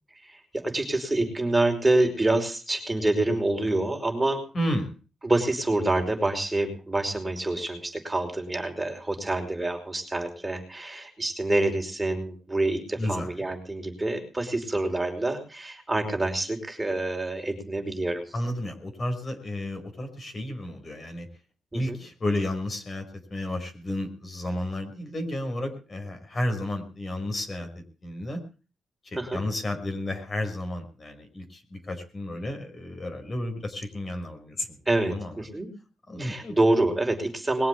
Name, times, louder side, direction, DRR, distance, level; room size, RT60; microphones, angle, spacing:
voice 1, 0.2-4.4 5.2-18.2 21.7-22.0 29.2-29.4 34.9-35.7 36.2-37.7, right 2 dB, 15° right, 4 dB, 5.3 m, -27 dB
voice 2, 4.5-4.9 13.0-13.5 18.3-21.3 21.7-27.7 28.0-28.4 29.0-34.8 35.0-35.3 36.1-36.5, left 1 dB, 35° left, 6 dB, 5.4 m, -32 dB
21.5 x 7.7 x 8.4 m, 0.37 s
cardioid pair, 100°, 0 cm